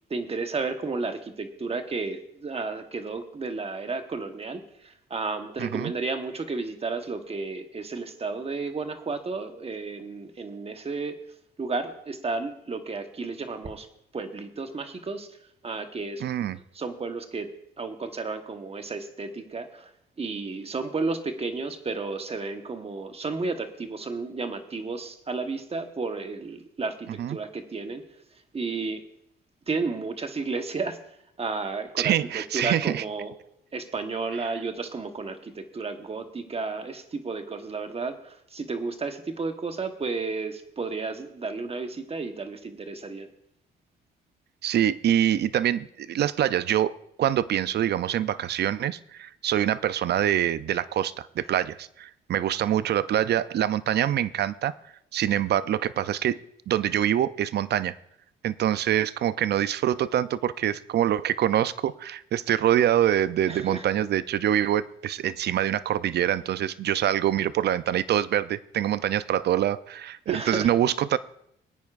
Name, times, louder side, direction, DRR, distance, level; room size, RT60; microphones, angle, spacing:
voice 1, 0.1-11.1 11.6-13.9 14.1-15.3 15.6-16.2 16.7-17.5 17.8-19.9 20.2-28.0 28.5-29.0 29.7-31.0 31.4-33.4 33.7-43.3 51.4-51.5 63.5-63.9 70.3-70.7, right 4 dB, 30° right, 7 dB, 1.1 m, -32 dB
voice 2, 5.6-5.9 16.2-16.6 27.2-27.4 32.0-33.0 44.6-54.7 55.1-56.4 56.7-57.9 58.4-71.2, right 11 dB, 55° right, 16 dB, 0.5 m, -25 dB
21.0 x 9.3 x 2.5 m, 0.77 s
cardioid pair, 90°, 20 cm